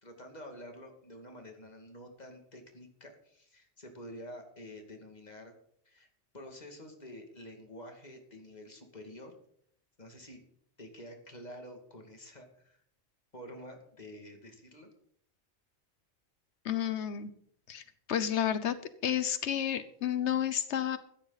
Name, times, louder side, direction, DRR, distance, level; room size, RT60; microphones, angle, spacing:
voice 1, 0.0-5.5 5.8-6.1 6.3-9.3 10.0-10.4 10.8-12.8 13.3-14.9, equal, 40° left, 4 dB, 2.6 m, -48 dB
voice 2, 16.6-17.3 17.7-17.8 18.1-18.8 19.0-21.0, left 10 dB, 85° left, 13 dB, 1.1 m, -31 dB
15.5 x 13.0 x 4.1 m, 0.66 s
omnidirectional pair, 1.1 m